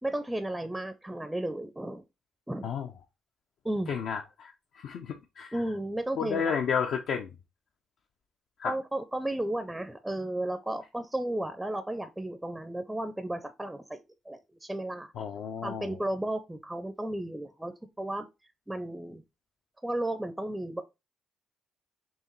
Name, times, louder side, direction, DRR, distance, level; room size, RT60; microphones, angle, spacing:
voice 1, 0.0-2.0 2.5-2.7 3.6-4.0 5.5-6.5 8.7-14.0 14.3-15.1 15.6-18.3 18.7-19.2 19.8-20.8, right 1 dB, 5° right, 0.4 m, -33 dB
voice 2, 3.9-5.6 6.2-7.3 8.6-8.7 15.2-15.9, left 6 dB, 70° left, 0.5 m, -32 dB
4.6 x 2.9 x 3.1 m
cardioid pair, 90°, 0 cm